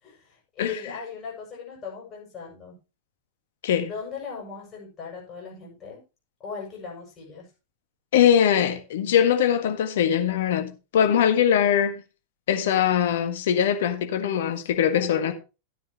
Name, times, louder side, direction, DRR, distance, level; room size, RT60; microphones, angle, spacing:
voice 1, 0.0-2.8 3.9-6.0 6.4-7.4 14.7-15.3, left 5 dB, 30° left, 7.2 m, -38 dB
voice 2, 8.1-12.0 12.5-15.3, left 9 dB, 55° left, 1.7 m, -22 dB
13.5 x 9.5 x 3.0 m
figure-of-eight pair, 90°, 0 cm